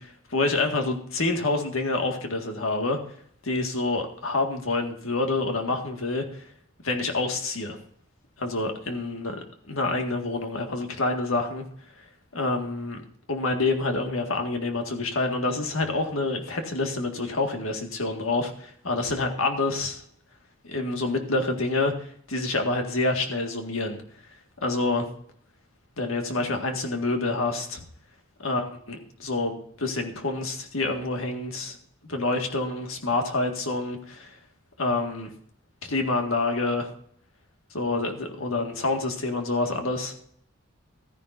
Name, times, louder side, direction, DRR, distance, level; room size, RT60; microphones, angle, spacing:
voice 1, 0.0-3.0 3.4-6.5 6.8-7.8 8.4-9.4 9.7-11.6 12.0-12.1 12.3-13.0 13.3-20.0 20.6-24.0 24.6-25.1 26.0-27.8 28.4-31.8 32.0-34.4 34.8-35.3 35.9-36.9 37.7-40.1, left 2 dB, 80° left, 4 dB, 1.9 m, -27 dB
14.5 x 10.5 x 2.7 m, 0.63 s
head